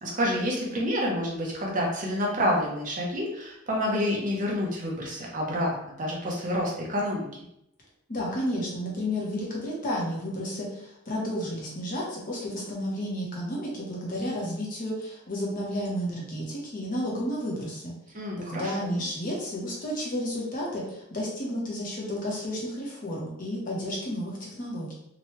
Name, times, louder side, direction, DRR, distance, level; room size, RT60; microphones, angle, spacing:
voice 1, 0.0-7.3 18.1-19.0, equal, 35° right, -2 dB, 0.7 m, -28 dB
voice 2, 8.1-17.9 18.4-24.9, equal, 35° left, -4 dB, 0.8 m, -32 dB
2.9 x 2.2 x 3.0 m, 0.79 s
head